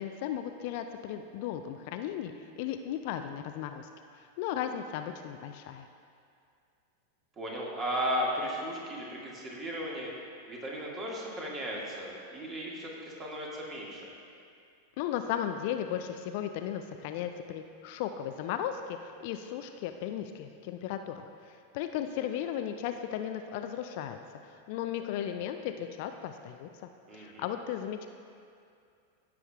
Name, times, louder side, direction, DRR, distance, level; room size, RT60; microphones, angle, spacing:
voice 1, 0.0-3.9 4.2-5.9 15.0-24.2 24.4-26.7 27.1-28.1, left 10 dB, 50° left, 7 dB, 0.4 m, -36 dB
voice 2, 7.4-10.1 10.5-12.9 13.2-14.1 27.1-27.4, equal, 25° right, -3 dB, 1.9 m, -35 dB
15.0 x 7.0 x 2.4 m, 2.4 s
figure-of-eight pair, 90°, 0 cm